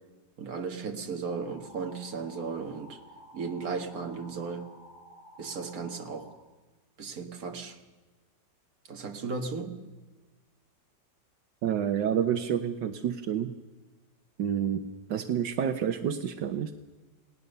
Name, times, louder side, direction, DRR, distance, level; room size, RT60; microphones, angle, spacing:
voice 1, 0.4-3.0 3.3-4.6 5.4-6.3 7.0-7.8 8.9-9.8, right 5 dB, 55° right, 5 dB, 2.2 m, -35 dB
sound 1, 1.3-6.3, equal, ahead, 4.8 m, -52 dB
voice 2, 11.6-13.5 14.4-16.7, right 9 dB, 80° right, 8 dB, 1.6 m, -29 dB
28.5 x 18.5 x 6.7 m, 1.2 s
omnidirectional pair, 1.9 m